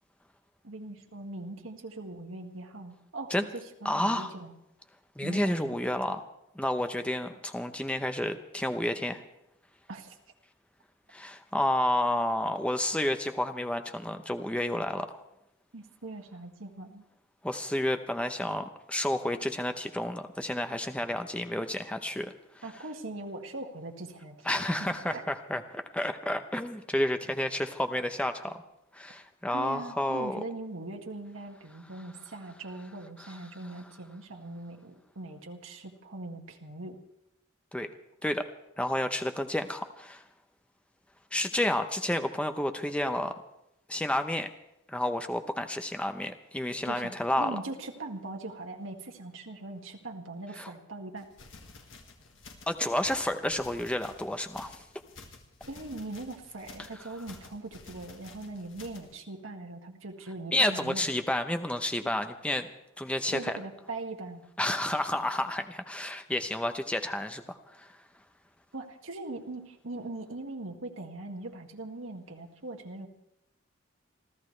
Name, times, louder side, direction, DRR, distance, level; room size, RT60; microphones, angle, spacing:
voice 1, 0.6-4.5 5.2-5.8 9.9-10.2 15.7-17.1 22.6-24.5 24.8-25.2 29.5-37.0 46.9-51.3 55.7-61.1 63.3-64.5 68.7-73.1, right 2 dB, 75° right, 2 dB, 1.8 m, -41 dB
voice 2, 3.8-4.3 5.2-6.2 6.5-9.2 11.1-15.2 17.4-22.6 24.4-28.6 28.9-30.4 33.2-33.4 37.7-37.9 38.2-38.5 38.8-40.2 41.3-43.4 43.9-44.5 44.9-47.6 50.6-50.7 52.7-54.8 60.5-62.7 63.0-63.5 64.6-68.0, left 1 dB, 5° left, 7 dB, 0.7 m, -30 dB
sound 1, 51.2-59.2, left 3 dB, 65° left, 1.8 m, -52 dB
27.5 x 14.0 x 3.3 m, 0.84 s
head